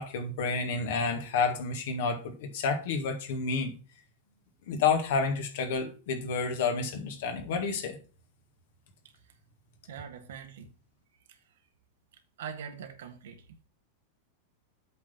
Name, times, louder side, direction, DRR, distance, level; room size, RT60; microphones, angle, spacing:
voice 1, 0.0-3.7 4.7-8.0, left 4 dB, 55° left, 2.1 m, -30 dB
voice 2, 9.9-10.7 12.4-13.4, right 7 dB, 60° right, 1.6 m, -42 dB
8.2 x 5.1 x 5.9 m
figure-of-eight pair, 90°, 0 cm